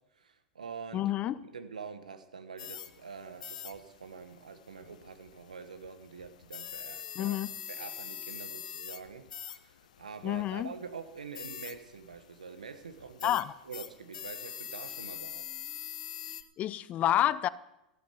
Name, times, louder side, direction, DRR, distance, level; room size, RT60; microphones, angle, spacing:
voice 1, 0.2-1.0 1.5-7.4 7.7-13.4 13.6-15.5, right 5 dB, 85° right, 10 dB, 1.2 m, -45 dB
voice 2, 0.9-1.4 7.2-7.5 10.2-10.7 13.2-13.5 16.6-17.5, left 13 dB, 35° left, 18 dB, 0.6 m, -28 dB
sound 1, 2.6-16.4, left 10 dB, 75° left, 0.8 m, -45 dB
14.0 x 9.2 x 6.9 m, 0.88 s
hypercardioid pair, 90°, 4 cm